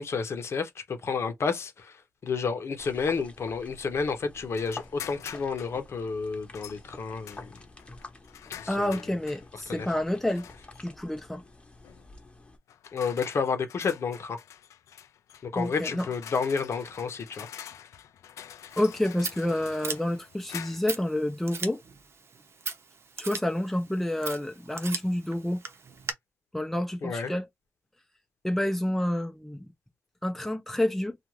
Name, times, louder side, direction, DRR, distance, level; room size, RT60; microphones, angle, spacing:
voice 1, 0.0-2.0 2.2-7.5 8.6-9.0 9.7-9.9 12.9-14.4 15.4-17.5 27.0-27.3, left 5 dB, 60° left, 0.9 m, -30 dB
sound 1, 2.8-12.6, left 2 dB, 20° left, 0.9 m, -49 dB
sound 2, 4.5-5.8 6.5-6.8 7.2-9.5 10.3-10.8 11.8-12.1 12.7-21.0, left 9 dB, 85° left, 0.4 m, -46 dB
voice 2, 8.7-10.5 10.8-11.4 15.5-16.1 18.8-21.8 23.2-25.6 26.5-27.5 28.4-29.7 30.2-31.2, left 1 dB, 5° left, 0.6 m, -29 dB
Scissors, 18.7-26.1, right 5 dB, 55° right, 0.7 m, -40 dB
2.5 x 2.4 x 3.1 m
cardioid pair, 70°, 5 cm